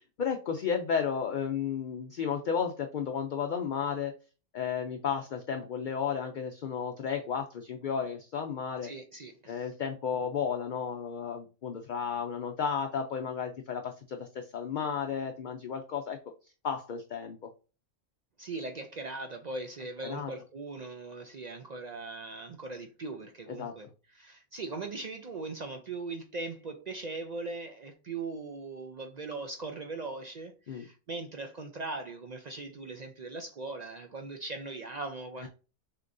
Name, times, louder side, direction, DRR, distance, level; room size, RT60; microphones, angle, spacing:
voice 1, 0.0-4.1 4.5-8.9 9.5-16.2 16.6-17.5 20.0-20.3 23.6-23.7 30.7-30.9 35.4-35.5, left 7 dB, 55° left, 0.6 m, -33 dB
voice 2, 8.8-9.7 18.4-35.5, right 3 dB, 55° right, 0.4 m, -40 dB
6.2 x 2.9 x 2.6 m
omnidirectional pair, 1.3 m